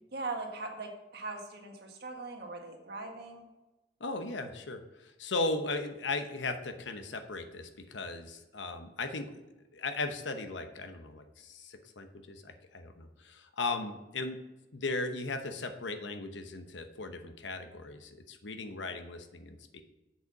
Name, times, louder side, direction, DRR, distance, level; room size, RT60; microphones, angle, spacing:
voice 1, 0.1-3.5, right 3 dB, 60° right, 2 dB, 1.7 m, -40 dB
voice 2, 4.0-9.4 9.7-14.4 14.7-19.8, left 3 dB, 85° left, 8 dB, 1.0 m, -37 dB
7.9 x 6.7 x 4.8 m, 1.1 s
head